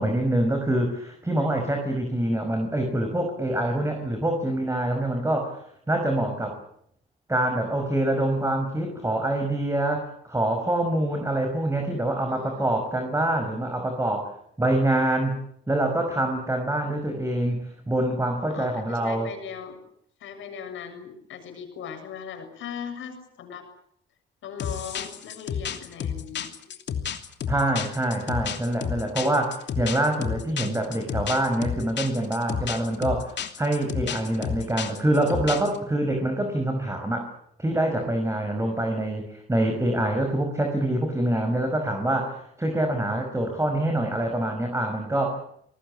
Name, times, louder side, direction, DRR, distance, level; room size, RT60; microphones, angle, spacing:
voice 1, 0.0-6.6 7.3-14.3 14.6-15.4 15.7-19.3 27.5-37.3 37.6-45.4, right 1 dB, 15° right, 4 dB, 5.6 m, -25 dB
voice 2, 12.3-12.8 18.5-19.8 20.2-23.7 24.4-26.5, left 7 dB, 80° left, 7 dB, 7.3 m, -39 dB
sound 1, 24.6-35.8, left 8 dB, 65° left, 3.0 m, -31 dB
28.5 x 19.5 x 8.7 m, 0.69 s
cardioid pair, 90°, 20 cm